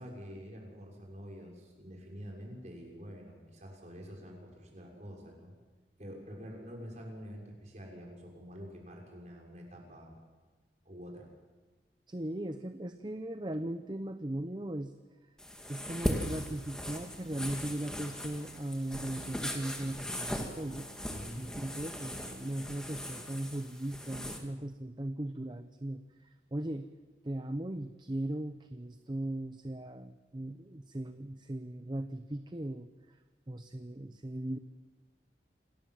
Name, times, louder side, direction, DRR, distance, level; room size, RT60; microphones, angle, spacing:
voice 1, 0.0-5.5 6.0-10.1 10.8-11.3 21.1-21.5, equal, 40° right, 0 dB, 6.3 m, -47 dB
voice 2, 12.1-14.9 15.7-20.9 21.4-26.9 27.2-33.2 33.5-34.6, right 1 dB, 25° right, 9 dB, 0.8 m, -38 dB
sound 1, 15.4-24.4, equal, 5° left, 2.3 m, -39 dB
27.5 x 19.0 x 7.6 m, 1.3 s
head